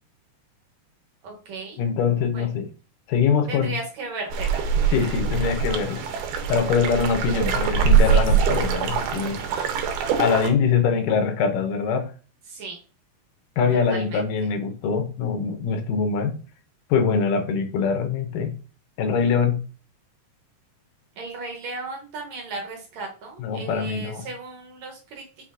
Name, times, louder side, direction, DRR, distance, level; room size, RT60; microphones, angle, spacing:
voice 1, 1.2-1.8 2.3-2.5 3.5-4.7 8.1-8.5 9.2-9.8 12.5-12.8 13.9-14.5 21.2-25.2, right 3 dB, 65° right, 2.0 m, -36 dB
voice 2, 1.8-2.7 3.1-3.7 4.9-6.0 6.5-9.4 10.2-12.1 13.6-16.4 16.9-18.5 19.0-19.6 23.4-24.3, left 6 dB, 90° left, 2.4 m, -23 dB
sound 1, 4.3-10.5, right 6 dB, 85° right, 2.2 m, -23 dB
5.9 x 3.6 x 2.5 m
omnidirectional pair, 3.7 m